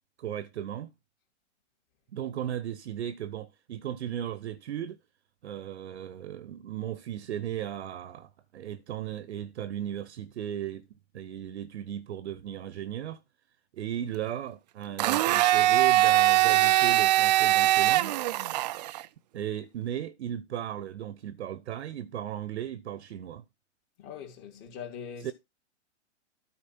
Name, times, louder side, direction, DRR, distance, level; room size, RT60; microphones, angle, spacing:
voice 1, 0.2-0.9 2.1-5.0 5.4-10.9 11.1-13.2 13.7-18.2 19.3-23.4 25.2-25.3, right 10 dB, 65° right, 0.9 m, -36 dB
Domestic sounds home sounds, 15.0-19.0, right 15 dB, 35° right, 0.4 m, -22 dB
voice 2, 24.0-25.3, left 7 dB, 35° left, 2.7 m, -42 dB
12.5 x 4.4 x 4.3 m
hypercardioid pair, 115°, 37 cm